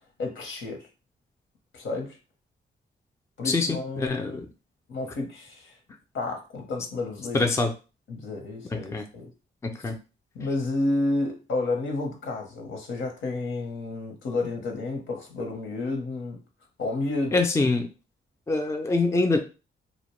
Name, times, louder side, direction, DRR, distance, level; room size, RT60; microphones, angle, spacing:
voice 1, 0.2-0.9 1.7-2.2 3.4-4.4 4.9-5.8 6.1-7.5 8.1-9.3 10.3-16.4 16.8-17.4, left 2 dB, 80° left, 2 dB, 0.8 m, -31 dB
voice 2, 3.4-4.5 7.3-7.7 8.7-9.0 9.6-10.0 17.3-17.8 18.5-19.4, left 3 dB, 15° left, 4 dB, 0.3 m, -24 dB
2.5 x 2.1 x 3.0 m, 0.32 s
wide cardioid pair, 110°, 19 cm